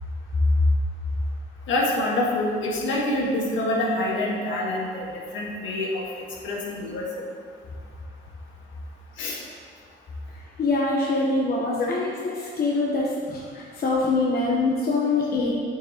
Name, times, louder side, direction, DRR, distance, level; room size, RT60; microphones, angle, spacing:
voice 1, 1.7-5.1 5.3-6.0 6.4-7.1 9.2-9.4 11.8-11.9, left 1 dB, 75° left, -3 dB, 1.6 m, -26 dB
voice 2, 10.3-15.5, left 3 dB, 50° left, -3 dB, 1.0 m, -24 dB
8.4 x 5.9 x 2.9 m, 2.1 s
cardioid pair, 90°, 20 cm